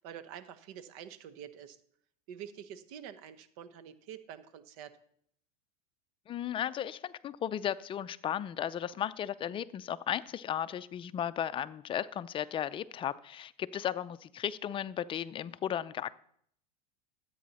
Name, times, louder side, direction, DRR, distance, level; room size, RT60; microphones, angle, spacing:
voice 1, 0.0-1.8 2.3-4.9, right 9 dB, 65° right, 12 dB, 1.1 m, -47 dB
voice 2, 6.3-16.1, left 10 dB, 25° left, 15 dB, 0.5 m, -35 dB
13.0 x 8.5 x 4.2 m, 0.66 s
supercardioid pair, 115°, 20 cm